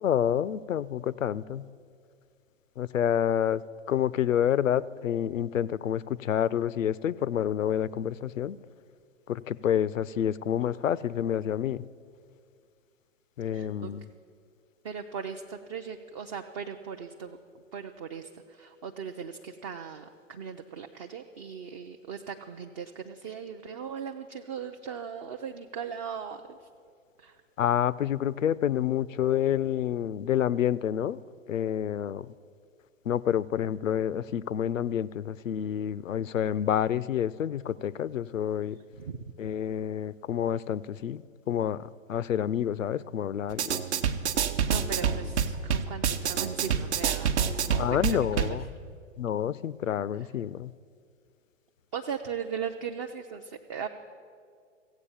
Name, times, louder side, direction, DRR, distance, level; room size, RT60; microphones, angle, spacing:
voice 1, 0.0-1.7 2.8-3.6 3.9-8.6 9.3-11.8 13.4-14.1 27.6-31.2 31.5-32.3 33.1-38.8 39.4-41.2 41.5-43.8 47.8-48.6 49.2-50.7, left 9 dB, 85° left, 20 dB, 0.5 m, -28 dB
voice 2, 13.4-13.9 14.8-17.4 17.7-26.7 27.2-27.4 39.0-39.2 44.4-47.8 48.1-48.6 51.9-53.9, right 7 dB, 25° right, 4 dB, 0.4 m, -38 dB
sound 1, 43.5-48.6, right 7 dB, 60° right, 0.9 m, -28 dB
15.5 x 8.1 x 7.1 m, 2.2 s
figure-of-eight pair, 115°, 38 cm